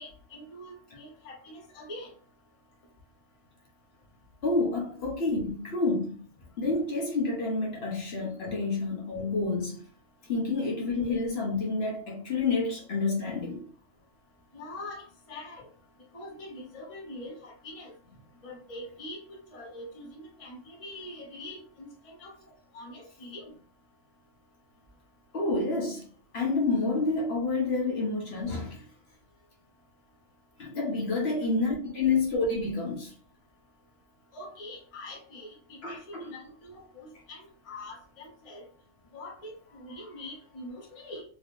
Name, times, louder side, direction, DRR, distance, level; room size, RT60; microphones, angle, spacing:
voice 1, 0.0-2.1 14.5-15.7 16.1-17.9 18.4-19.2 19.5-22.3 22.7-23.5 34.3-38.7 39.1-41.2, left 1 dB, 30° left, 0.8 m, -44 dB
voice 2, 4.4-6.2 6.6-9.8 10.3-13.7 25.3-26.0 26.3-28.8 30.6-33.1 35.8-36.3, left 3 dB, 55° left, 1.1 m, -29 dB
3.5 x 3.0 x 2.4 m
omnidirectional pair, 1.4 m